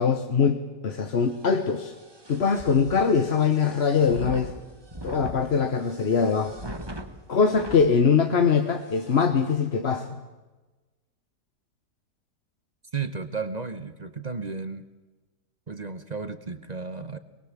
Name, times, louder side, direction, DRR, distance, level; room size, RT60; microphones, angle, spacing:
voice 1, 0.0-1.9 2.3-4.5 5.0-6.5 7.3-10.2, left 6 dB, 45° left, 7 dB, 1.2 m, -22 dB
sound 1, 1.2-7.9 8.4-8.5 8.8-9.2, right 1 dB, 15° right, 1.4 m, -41 dB
voice 2, 12.9-14.8 15.7-17.2, right 4 dB, 30° right, 10 dB, 0.9 m, -33 dB
22.0 x 22.0 x 7.4 m, 1.2 s
omnidirectional pair, 1.8 m